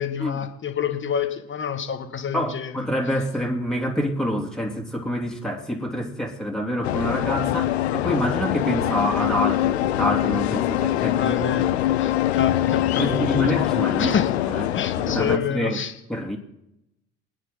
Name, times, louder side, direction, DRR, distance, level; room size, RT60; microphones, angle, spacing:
voice 1, 0.0-2.7 11.2-13.5 14.0-14.3 14.7-15.9, left 7 dB, 40° left, 7 dB, 2.0 m, -28 dB
voice 2, 2.3-11.4 13.0-14.1 14.4-14.7 15.0-15.8 16.1-16.4, equal, ahead, 0 dB, 2.9 m, -26 dB
sound 1, 6.8-15.4, left 13 dB, 85° left, 0.8 m, -23 dB
25.5 x 9.7 x 4.0 m, 0.87 s
hypercardioid pair, 60°, 32 cm